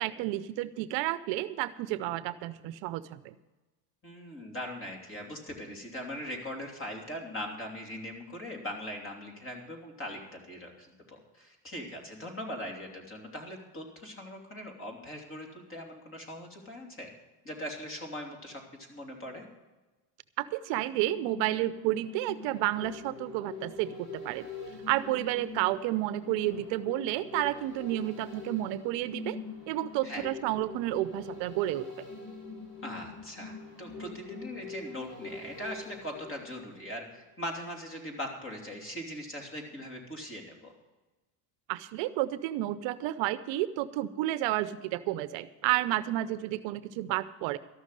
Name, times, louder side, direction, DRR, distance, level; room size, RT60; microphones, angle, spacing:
voice 1, 0.0-3.3 20.4-24.5 24.9-29.4 29.7-31.9 41.7-47.6, right 15 dB, 65° right, 14 dB, 0.7 m, -31 dB
voice 2, 4.0-17.1 17.4-19.4 30.0-30.3 32.8-40.7, equal, 25° left, 2 dB, 3.1 m, -40 dB
sound 1, 21.0-37.2 37.6-37.7, left 4 dB, 60° left, 5.9 m, -44 dB
13.5 x 6.3 x 9.8 m, 1.1 s
cardioid pair, 130°, 48 cm